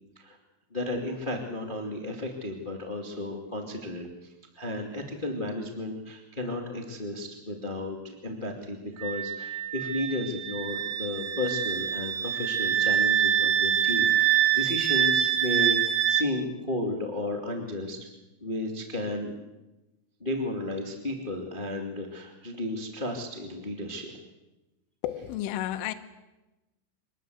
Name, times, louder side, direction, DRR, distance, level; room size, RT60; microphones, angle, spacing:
voice 1, 0.7-18.0 18.4-19.5 20.2-24.1, left 1 dB, 40° left, 2 dB, 0.6 m, -33 dB
Wind instrument woodwind instrument, 9.0-16.3, right 10 dB, 70° right, 2.2 m, -25 dB
voice 2, 25.0-25.9, left 13 dB, 80° left, 7 dB, 3.5 m, -31 dB
25.0 x 20.5 x 7.9 m, 1.1 s
omnidirectional pair, 5.8 m